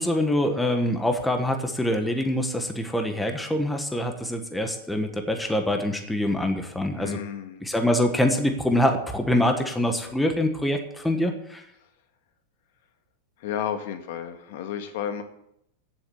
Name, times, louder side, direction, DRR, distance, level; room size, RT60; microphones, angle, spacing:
voice 1, 0.0-7.2 7.6-11.6, left 1 dB, 5° left, 5 dB, 1.4 m, -25 dB
voice 2, 6.9-7.6 11.1-11.3 13.4-15.2, left 9 dB, 65° left, 7 dB, 1.8 m, -32 dB
16.0 x 7.3 x 7.2 m, 0.76 s
supercardioid pair, 150°, 0 cm